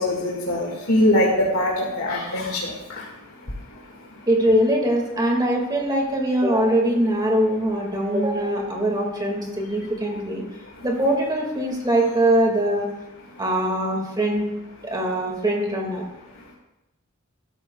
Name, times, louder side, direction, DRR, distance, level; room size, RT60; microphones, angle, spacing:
voice 1, 0.0-3.1, left 1 dB, 75° left, -4 dB, 1.9 m, -22 dB
voice 2, 4.3-10.4 10.8-12.9 13.4-14.5 14.8-16.0, right 1 dB, 20° right, 1 dB, 2.0 m, -22 dB
13.0 x 13.0 x 2.3 m, 0.95 s
head